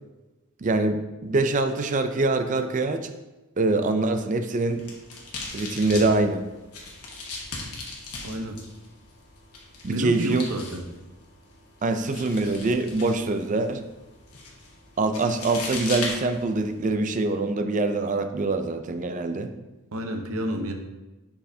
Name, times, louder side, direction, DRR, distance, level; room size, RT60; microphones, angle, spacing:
voice 1, 0.6-3.1 3.6-4.8 5.5-6.4 9.8-10.4 11.8-13.8 15.0-19.5, right 2 dB, 35° right, 8 dB, 0.4 m, -24 dB
sound 1, 4.5-16.9, left 3 dB, 80° left, 1.2 m, -39 dB
voice 2, 8.2-8.6 9.9-10.8 19.9-20.7, equal, 70° right, 4 dB, 0.8 m, -30 dB
6.5 x 5.6 x 2.7 m, 1.1 s
head